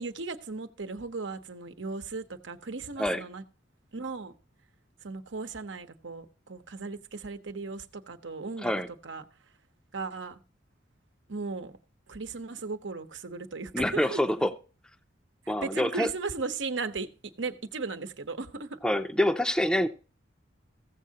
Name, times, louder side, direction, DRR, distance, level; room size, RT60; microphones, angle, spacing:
voice 1, 0.0-3.4 3.9-4.3 5.0-8.7 9.0-9.2 9.9-10.4 11.3-11.8 12.1-14.2 15.6-17.1 17.4-18.8, right 4 dB, 80° right, 1.0 m, -36 dB
voice 2, 13.7-14.5 15.5-16.1 18.8-19.9, left 1 dB, 5° left, 0.5 m, -26 dB
15.5 x 7.4 x 2.8 m
head